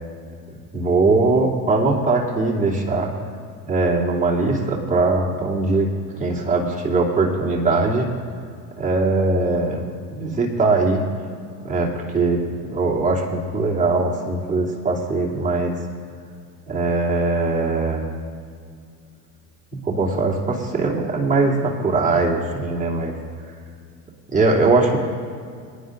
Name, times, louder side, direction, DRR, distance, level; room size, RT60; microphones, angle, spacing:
voice 1, 0.7-3.1 3.7-5.9 6.2-8.1 8.8-9.8 10.1-11.0 11.6-12.4 12.7-15.8 16.7-18.0 19.7-23.1 24.3-25.0, right 3 dB, 15° right, -3 dB, 2.9 m, -20 dB
24.0 x 10.5 x 2.6 m, 2.3 s
hypercardioid pair, 75°, 50 cm